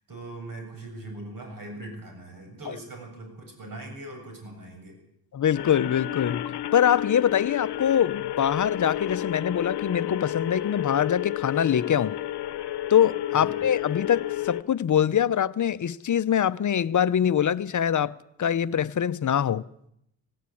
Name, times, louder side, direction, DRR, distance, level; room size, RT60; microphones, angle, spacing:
voice 1, 0.0-5.0 13.3-13.6, right 2 dB, 55° right, 7.4 m, -41 dB
voice 2, 5.3-12.1 12.9-18.1 18.4-19.6, left 9 dB, 50° left, 0.7 m, -24 dB
sound 1, 5.5-14.6, left 13 dB, 85° left, 0.9 m, -31 dB
17.5 x 17.5 x 8.6 m
cardioid pair, 105°, 39 cm